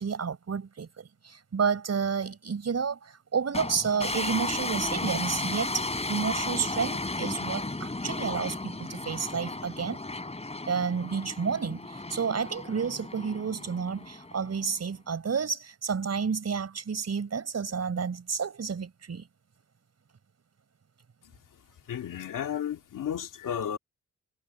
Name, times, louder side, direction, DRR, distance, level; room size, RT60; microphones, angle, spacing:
voice 1, 0.0-10.0 10.7-19.3, right 6 dB, 55° right, 4.6 m, -30 dB
sound 1, 3.5-14.8, left 2 dB, 20° left, 4.0 m, -34 dB
voice 2, 21.9-23.8, left 9 dB, 85° left, 2.3 m, -33 dB
cardioid pair, 75°, 31 cm